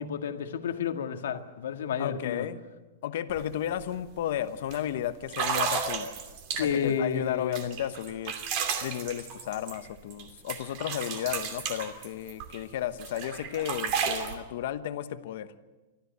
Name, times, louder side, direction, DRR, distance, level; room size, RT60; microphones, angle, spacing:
voice 1, 0.0-2.5 6.6-7.7, left 7 dB, 85° left, 6 dB, 1.8 m, -31 dB
voice 2, 2.0-2.6 3.0-6.1 6.5-8.4 8.8-15.5, left 11 dB, 50° left, 12 dB, 1.0 m, -33 dB
sound 1, 3.3-3.4 3.8-4.1 4.7-4.8 5.3-6.9 7.5-10.2 10.5-12.6 13.0-14.3, right 6 dB, 35° right, 2.6 m, -32 dB
24.5 x 14.0 x 8.1 m, 1.2 s
supercardioid pair, 180°, 0 cm